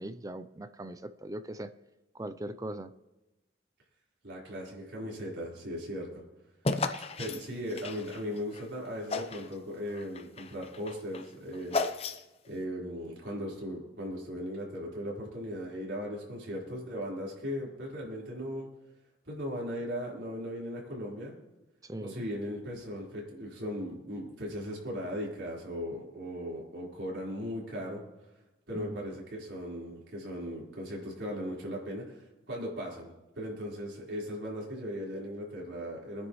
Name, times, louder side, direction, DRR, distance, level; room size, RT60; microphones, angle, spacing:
voice 1, 0.0-1.7 2.1-2.9 21.8-22.3 28.7-29.1, right 1 dB, 20° right, 12 dB, 0.5 m, -40 dB
voice 2, 4.2-6.2 7.2-11.8 12.5-18.7 19.3-21.4 22.0-28.0 28.7-36.3, equal, 80° right, -4 dB, 4.4 m, -38 dB
sound 1, 6.6-8.7 9.1-9.5 9.9-12.5, left 3 dB, 35° left, 0.7 m, -34 dB
23.0 x 9.7 x 3.1 m, 1.0 s
head